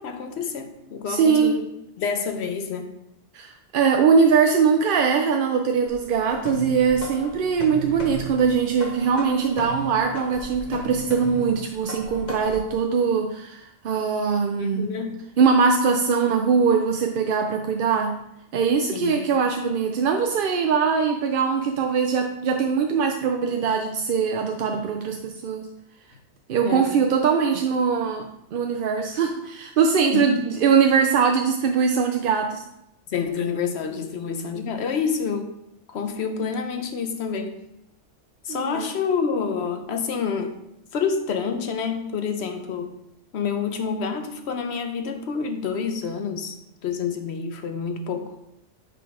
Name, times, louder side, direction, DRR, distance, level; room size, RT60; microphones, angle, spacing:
voice 1, 0.0-1.6 2.0-2.9 14.6-15.2 18.9-19.2 26.6-26.9 30.1-30.4 33.1-35.5 35.9-37.6 38.4-40.5 40.9-42.9 43.3-46.6 46.8-48.3, left 6 dB, 65° left, 6 dB, 1.0 m, -28 dB
voice 2, 1.1-1.6 3.3-14.9 15.4-18.1 18.5-25.7 26.5-32.6 38.5-38.9, right 6 dB, 60° right, 3 dB, 0.6 m, -21 dB
sound 1, 5.9-12.7, right 2 dB, 40° left, 1.0 m, -36 dB
6.7 x 3.9 x 4.9 m, 0.81 s
omnidirectional pair, 1.2 m